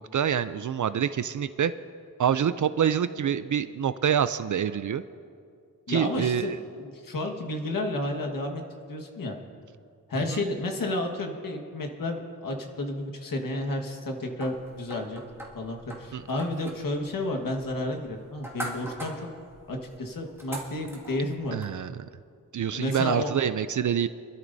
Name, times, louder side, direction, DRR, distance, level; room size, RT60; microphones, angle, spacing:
voice 1, 0.0-1.7 2.2-5.0 5.9-6.6 10.3-10.4 16.1-16.2 21.5-22.1 22.5-24.1, right 8 dB, 60° right, 13 dB, 0.4 m, -26 dB
voice 2, 5.9-8.6 8.9-9.4 10.1-15.2 15.5-19.3 19.7-21.6 22.7-23.3, left 1 dB, 65° left, 2 dB, 1.6 m, -31 dB
sound 1, 14.4-21.7, equal, 5° right, 2.0 m, -43 dB
26.5 x 12.5 x 2.7 m, 2.3 s
wide cardioid pair, 160°, 35 cm